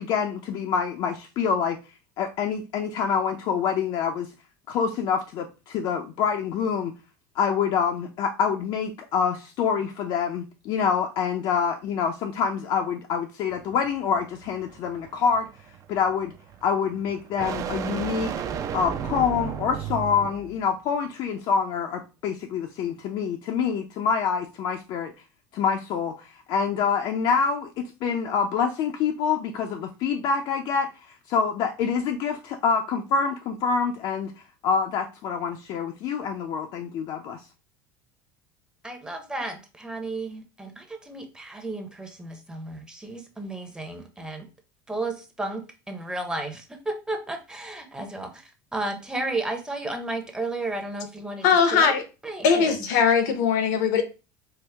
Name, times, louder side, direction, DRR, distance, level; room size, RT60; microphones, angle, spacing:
voice 1, 0.0-1.8 2.2-4.3 4.7-6.9 7.4-15.5 15.9-16.3 16.6-18.3 18.7-25.1 25.5-30.9 31.3-34.3 34.6-37.4, left 6 dB, 55° left, 0.5 m, -26 dB
sound 1, 13.5-20.6, right 8 dB, 40° right, 0.4 m, -34 dB
voice 2, 38.8-44.5 44.9-51.9 52.2-52.8, right 2 dB, 10° right, 0.7 m, -33 dB
voice 3, 51.4-52.0 52.4-54.0, left 6 dB, 80° left, 0.9 m, -20 dB
4.6 x 2.0 x 3.3 m
supercardioid pair, 125°, 9 cm